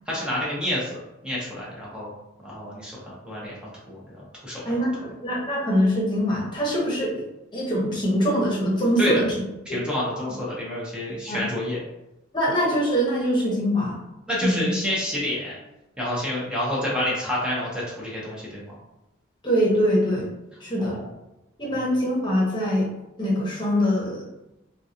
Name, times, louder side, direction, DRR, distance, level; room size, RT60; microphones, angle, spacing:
voice 1, 0.1-2.1 2.4-3.5 3.9-4.8 9.0-9.2 9.7-11.8 14.3-15.6 16.0-18.7 20.8-21.1 21.7-21.8, left 1 dB, 5° right, -5 dB, 0.8 m, -29 dB
voice 2, 5.2-7.1 7.5-9.2 9.7-9.8 11.3-11.4 12.3-14.0 14.4-14.7 19.4-20.3 20.6-21.0 21.6-22.9 23.2-24.2, equal, 25° left, -4 dB, 1.0 m, -23 dB
3.7 x 2.4 x 2.8 m, 0.94 s
head